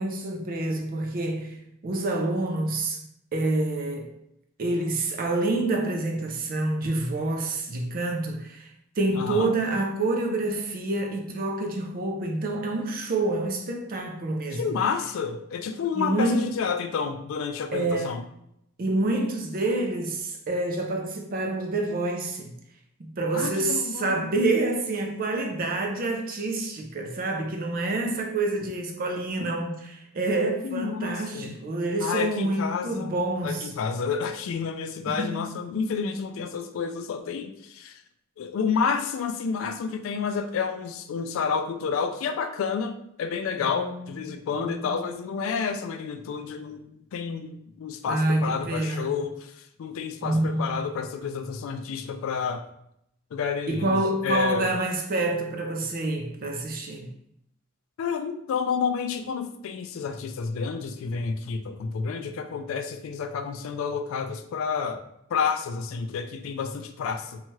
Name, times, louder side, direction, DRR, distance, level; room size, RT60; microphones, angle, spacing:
voice 1, 0.0-3.0 3.3-4.1 4.6-8.7 9.0-14.8 15.9-16.5 17.7-18.2 18.8-22.5 23.0-33.7 35.1-35.4 43.6-44.9 48.1-49.1 50.2-50.9 53.7-57.1, right 2 dB, 45° right, 0.4 m, -27 dB
voice 2, 9.2-9.5 14.6-18.2 23.3-24.3 30.6-31.6 32.0-33.1 33.4-38.0 38.4-49.5 49.8-52.6 53.3-54.7 58.0-65.0 65.3-67.4, left 6 dB, 70° left, 0.3 m, -30 dB
2.8 x 2.3 x 3.0 m
head